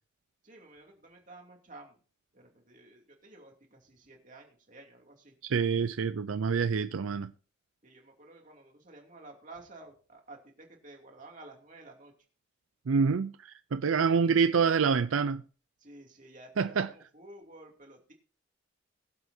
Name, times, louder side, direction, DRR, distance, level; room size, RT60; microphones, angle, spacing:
voice 1, 0.4-2.0 2.3-5.3 7.8-12.1 15.8-18.1, right 2 dB, 40° right, 2.8 m, -52 dB
voice 2, 5.4-7.3 12.9-15.4 16.6-16.9, right 5 dB, 80° right, 0.5 m, -27 dB
21.5 x 7.9 x 2.8 m
head